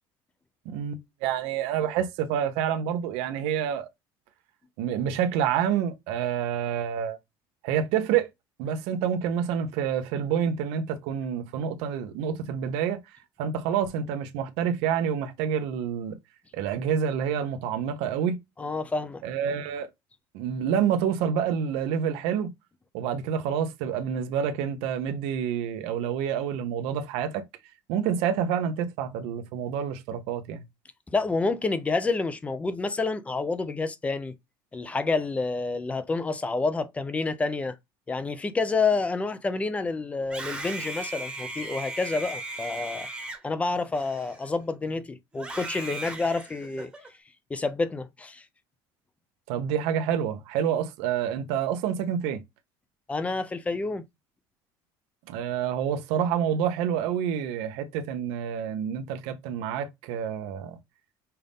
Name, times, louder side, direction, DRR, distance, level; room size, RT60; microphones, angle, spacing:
voice 1, 0.6-3.9 4.8-7.2 7.6-8.3 8.6-13.0 13.4-16.2 16.5-18.4 19.2-19.9 20.3-22.5 22.9-27.4 27.9-30.6 49.5-52.4 55.3-60.8, right 8 dB, 80° right, 0.9 m, -28 dB
voice 2, 18.6-19.2 31.1-34.3 34.7-37.8 38.1-43.1 43.4-46.9 47.5-48.4 53.1-54.0, left 3 dB, 15° left, 0.6 m, -28 dB
Screaming, 40.2-44.7 45.3-47.1, right 2 dB, 10° right, 1.2 m, -37 dB
5.6 x 2.6 x 3.5 m
cardioid pair, 145°, 10 cm